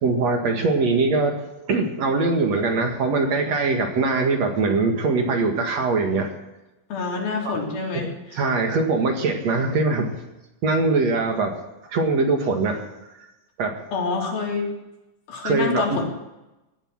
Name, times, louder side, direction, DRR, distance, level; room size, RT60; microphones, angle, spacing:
voice 1, 0.0-6.3 7.4-7.5 7.9-10.2 10.6-11.6 11.9-12.8 13.6-13.8 15.4-16.0, right 3 dB, 55° right, 3 dB, 2.7 m, -22 dB
voice 2, 6.9-8.5 13.9-14.7 15.3-16.1, left 4 dB, 90° left, -1 dB, 5.1 m, -27 dB
18.0 x 11.0 x 6.2 m, 0.97 s
omnidirectional pair, 4.1 m